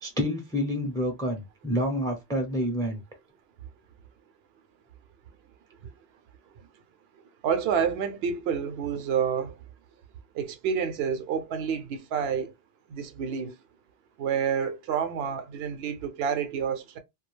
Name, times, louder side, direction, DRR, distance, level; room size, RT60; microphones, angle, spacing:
voice 1, 0.0-3.0, equal, 5° left, 0.5 m, -28 dB
voice 2, 7.4-9.6 10.3-12.5 12.9-13.5 14.2-17.0, right 7 dB, 70° right, 0.8 m, -28 dB
2.3 x 2.2 x 3.1 m
omnidirectional pair, 1.1 m